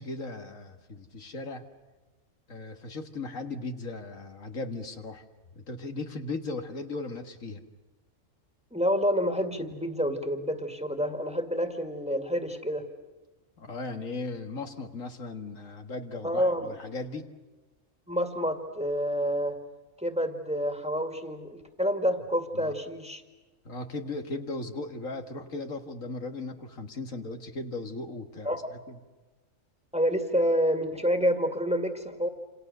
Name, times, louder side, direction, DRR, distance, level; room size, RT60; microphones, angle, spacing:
voice 1, 0.0-1.6 2.5-5.2 5.6-7.6 13.6-17.3 22.5-22.7 23.6-28.6 28.9-29.0, left 3 dB, 85° left, 5 dB, 2.2 m, -37 dB
voice 2, 8.7-12.9 16.2-16.7 18.1-19.6 20.0-23.2 28.4-28.7 29.9-32.3, equal, 5° right, 5 dB, 2.1 m, -28 dB
28.5 x 28.0 x 6.8 m, 1.2 s
omnidirectional pair, 1.3 m